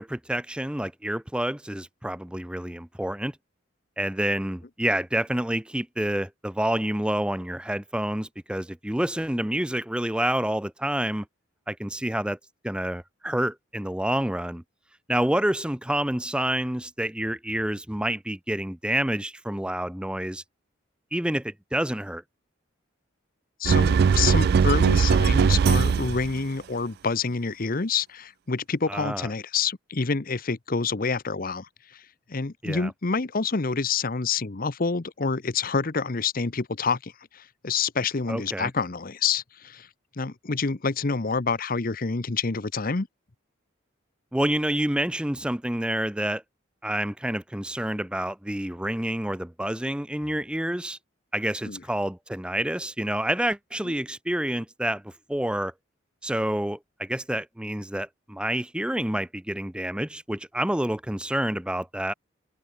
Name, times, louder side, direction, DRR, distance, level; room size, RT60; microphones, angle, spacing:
voice 1, 0.0-3.3 4.0-11.3 11.7-12.4 12.6-14.6 15.1-20.4 21.1-22.2 28.9-29.3 32.6-32.9 38.3-38.7 44.3-46.4 46.8-51.0 51.3-55.7 56.2-62.1, right 1 dB, 5° right, 0.7 m, -28 dB
voice 2, 23.6-32.0 32.3-39.9 40.2-43.1 51.7-51.8, left 4 dB, 45° left, 0.8 m, -27 dB
sound 1, 23.6-26.4, right 6 dB, 50° right, 0.3 m, -20 dB
head